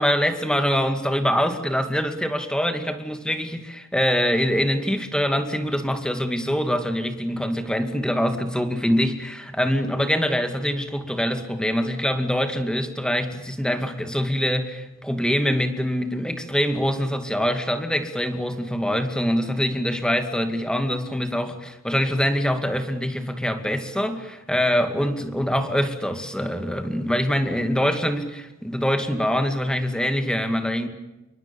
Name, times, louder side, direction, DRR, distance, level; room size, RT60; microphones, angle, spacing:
voice 1, 0.0-30.9, equal, 5° left, 7 dB, 2.3 m, -24 dB
28.0 x 24.0 x 7.2 m, 1.0 s
head